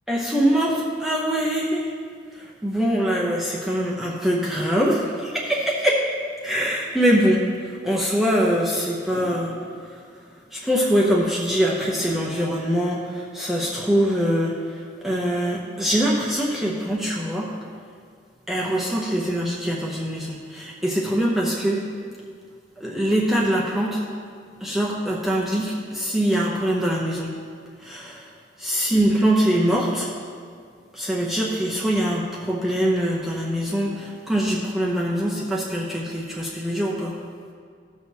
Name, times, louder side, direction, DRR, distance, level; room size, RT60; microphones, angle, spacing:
voice 1, 0.1-1.9 2.3-6.0 6.4-9.6 10.5-17.5 18.5-21.8 22.8-24.1 24.6-27.3 27.8-28.3 28.6-30.1 30.9-37.2, equal, ahead, -5 dB, 0.7 m, -23 dB
16.0 x 6.3 x 2.8 m, 2.1 s
head